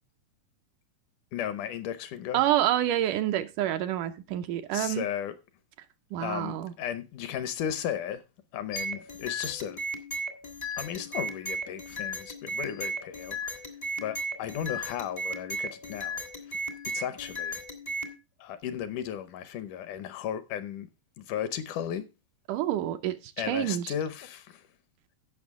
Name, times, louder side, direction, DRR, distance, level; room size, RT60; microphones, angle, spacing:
voice 1, 1.3-2.4 4.7-5.4 6.2-8.2 8.5-9.8 10.8-13.7 14.0-16.2 16.9-17.6 18.4-20.9 21.2-22.1 23.4-24.7, left 9 dB, 75° left, 2.2 m, -35 dB
voice 2, 2.3-5.1 6.1-6.7 22.5-23.2 23.5-23.9, right 12 dB, 75° right, 2.1 m, -27 dB
sound 1, 8.7-18.1, right 1 dB, 35° left, 0.6 m, -36 dB
16.0 x 6.0 x 3.6 m
omnidirectional pair, 3.9 m